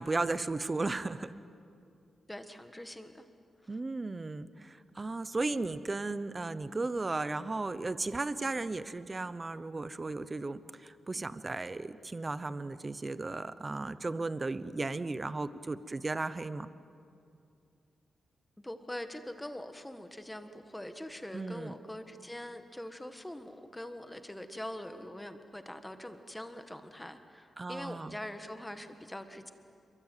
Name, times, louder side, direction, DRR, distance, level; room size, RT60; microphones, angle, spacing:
voice 1, 0.0-1.3 3.7-16.7 21.3-21.7 27.6-28.2, right 3 dB, 20° right, 14 dB, 0.8 m, -35 dB
voice 2, 2.3-3.2 18.6-29.5, left 1 dB, 5° left, 8 dB, 1.5 m, -43 dB
28.5 x 23.0 x 9.1 m, 2.5 s
wide cardioid pair, 165°, 0 cm